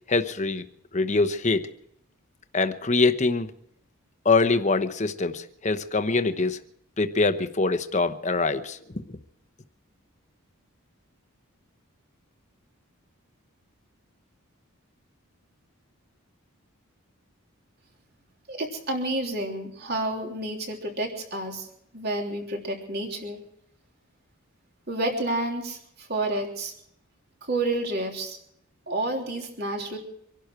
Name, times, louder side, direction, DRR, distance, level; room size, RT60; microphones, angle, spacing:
voice 1, 0.1-0.7 0.9-1.7 2.5-3.5 4.2-6.6 7.0-9.2, left 3 dB, 35° left, 9 dB, 0.9 m, -24 dB
voice 2, 18.5-21.7 21.9-23.4 24.9-26.7 27.4-28.4 28.9-30.0, right 2 dB, 45° right, 1 dB, 3.3 m, -30 dB
25.0 x 11.5 x 4.6 m, 0.72 s
head